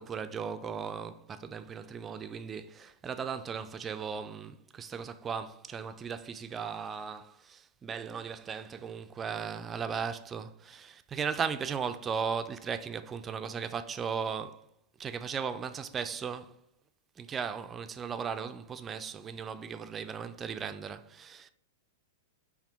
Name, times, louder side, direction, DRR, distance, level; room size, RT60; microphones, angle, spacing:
voice 1, 0.0-14.6 15.0-16.6 17.2-21.5, right 6 dB, 20° right, 0.3 m, -37 dB
5.2 x 2.4 x 4.0 m
figure-of-eight pair, 100°, 0 cm